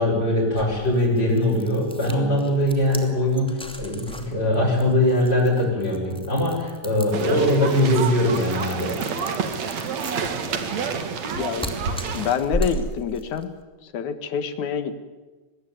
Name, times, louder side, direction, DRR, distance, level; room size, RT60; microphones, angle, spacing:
voice 1, 0.0-8.9, left 1 dB, 20° left, -4 dB, 7.6 m, -21 dB
sound 1, 0.6-13.5, equal, ahead, 2.2 m, -36 dB
sound 2, 7.1-12.3, right 6 dB, 65° right, 3.2 m, -28 dB
voice 2, 11.4-11.7 12.1-13.5 13.8-14.9, left 7 dB, 80° left, 10 dB, 3.1 m, -26 dB
23.5 x 21.0 x 9.6 m, 1.2 s
omnidirectional pair, 3.3 m